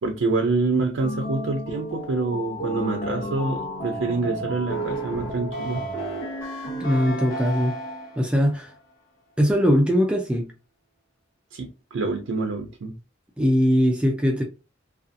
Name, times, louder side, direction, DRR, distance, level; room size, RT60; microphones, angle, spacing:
voice 1, 0.0-5.8 11.5-12.9, right 3 dB, 80° right, 0.5 m, -26 dB
sound 1, 1.0-8.3, right 1 dB, 70° left, 1.0 m, -32 dB
voice 2, 6.8-7.8 8.2-8.7 9.4-10.5 13.4-14.4, equal, 5° right, 0.3 m, -21 dB
2.5 x 2.3 x 2.5 m
head